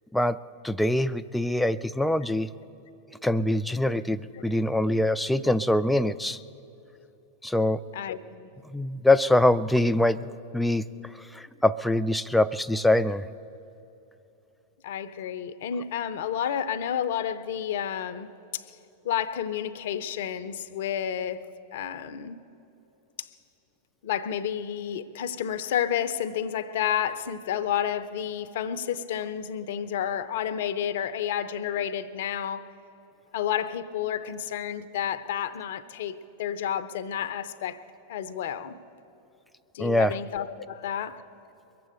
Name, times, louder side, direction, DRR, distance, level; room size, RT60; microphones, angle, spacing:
voice 1, 0.6-2.5 3.2-6.4 7.4-7.8 8.7-10.8 11.2-13.3 39.8-40.2, left 1 dB, 5° left, 0.4 m, -24 dB
voice 2, 7.9-8.5 14.8-18.8 19.0-21.4 21.7-22.4 23.2-23.3 24.0-32.7 33.3-37.8 38.1-38.7 39.7-41.2, left 9 dB, 55° left, 0.6 m, -30 dB
22.5 x 7.7 x 8.0 m
figure-of-eight pair, 90°, 0 cm